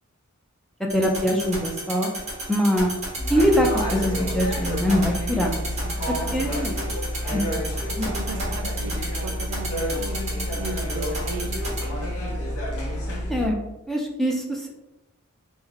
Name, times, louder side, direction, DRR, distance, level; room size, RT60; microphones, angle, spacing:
voice 1, 0.9-2.1 2.5-2.9 3.3-5.6 6.3-6.7 7.3-7.7 7.9-8.2 8.4-8.6 13.3-13.6 13.9-14.7, equal, ahead, 0 dB, 0.3 m, -23 dB
sound 1, 0.9-11.8, right 3 dB, 30° right, 1.0 m, -31 dB
sound 2, 3.2-13.5, equal, 70° left, 0.7 m, -29 dB
voice 2, 6.2-6.6 8.2-10.2 10.6-11.6, right 4 dB, 80° right, 10 dB, 0.3 m, -37 dB
3.1 x 2.1 x 3.5 m, 0.98 s
head